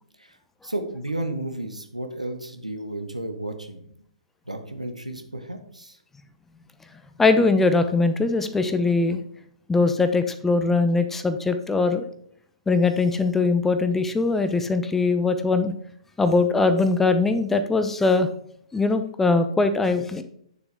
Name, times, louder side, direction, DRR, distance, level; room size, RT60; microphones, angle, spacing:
voice 1, 0.6-3.8 4.5-6.0, right 1 dB, 85° right, 6 dB, 1.2 m, -32 dB
voice 2, 7.2-9.2 9.7-12.0 12.7-15.7 16.2-18.3 18.7-20.2, left 3 dB, 5° left, 9 dB, 0.5 m, -21 dB
9.0 x 6.9 x 3.4 m, 0.68 s
figure-of-eight pair, 120°, 4 cm